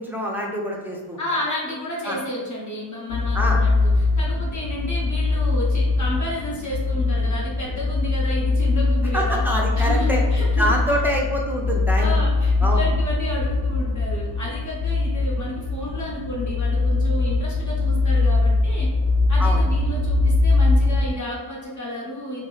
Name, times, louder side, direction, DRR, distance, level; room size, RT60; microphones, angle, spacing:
voice 1, 0.0-1.2 2.0-2.2 3.3-3.6 9.1-10.2 10.6-12.2 12.6-12.8 19.4-19.6, equal, 5° right, -2 dB, 0.6 m, -25 dB
voice 2, 1.2-9.4 9.7-10.7 12.0-18.9 19.3-22.4, left 1 dB, 40° left, -5 dB, 1.2 m, -31 dB
sound 1, 3.1-21.1, left 3 dB, 70° left, 0.7 m, -21 dB
5.8 x 2.1 x 4.0 m, 1.4 s
wide cardioid pair, 170°, 48 cm